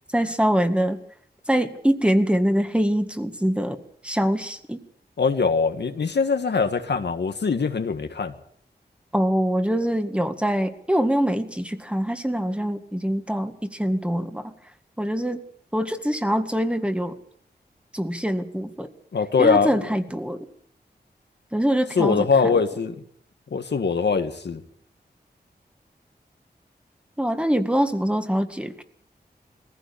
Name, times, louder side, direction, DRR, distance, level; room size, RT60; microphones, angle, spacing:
voice 1, 0.1-1.0 1.5-3.8 4.0-4.8 9.1-14.5 15.0-15.4 15.7-17.1 17.9-18.9 19.4-20.5 21.5-22.5 27.2-28.8, equal, 5° right, 7 dB, 1.9 m, -24 dB
voice 2, 5.2-8.3 19.1-19.7 22.0-22.9 23.5-24.6, left 5 dB, 85° left, 7 dB, 1.7 m, -22 dB
21.0 x 15.5 x 8.4 m, 0.67 s
wide cardioid pair, 85°, 17 cm